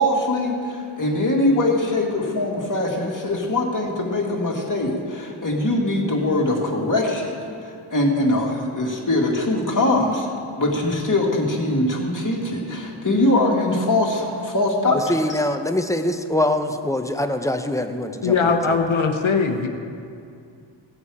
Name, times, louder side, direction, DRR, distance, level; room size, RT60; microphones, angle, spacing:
voice 1, 0.0-7.4 7.9-10.3 10.6-15.0 15.3-15.4, left 1 dB, 40° left, -1 dB, 2.1 m, -22 dB
voice 2, 14.9-18.8, left 1 dB, 5° left, 6 dB, 0.8 m, -24 dB
voice 3, 18.2-19.7, left 5 dB, 85° left, 4 dB, 0.9 m, -20 dB
17.0 x 8.0 x 4.8 m, 2.4 s
wide cardioid pair, 70°, 47 cm